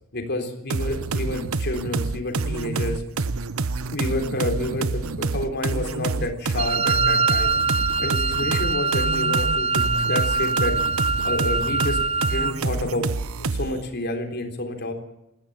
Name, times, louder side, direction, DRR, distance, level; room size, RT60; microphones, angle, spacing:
voice 1, 0.1-3.0 3.9-7.5 8.0-10.7 11.2-12.0 12.2-13.1 13.5-14.9, left 1 dB, 55° left, 4 dB, 3.8 m, -29 dB
sound 1, 0.7-13.8, right 3 dB, 90° right, 0.9 m, -27 dB
Wind instrument woodwind instrument, 6.6-12.6, right 3 dB, 30° right, 0.7 m, -23 dB
21.0 x 15.5 x 8.7 m, 0.85 s
head